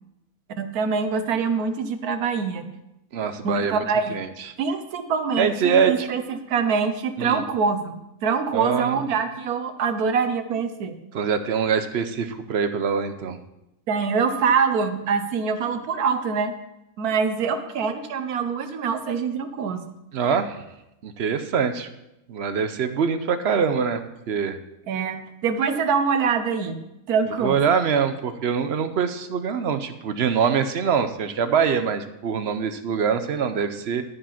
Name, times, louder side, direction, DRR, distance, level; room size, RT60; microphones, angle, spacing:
voice 1, 0.6-2.7 3.4-4.2 4.6-7.9 8.2-11.0 13.9-16.6 17.0-19.8 24.9-27.6, right 5 dB, 85° right, 9 dB, 1.4 m, -24 dB
voice 2, 3.1-3.8 4.1-4.3 5.4-6.1 7.2-7.4 8.5-9.1 11.1-13.4 20.1-20.6 21.0-21.9 22.3-24.0 24.3-24.6 27.4-34.0, right 6 dB, 55° right, 10 dB, 0.8 m, -24 dB
12.5 x 5.0 x 5.7 m, 0.89 s
omnidirectional pair, 1.6 m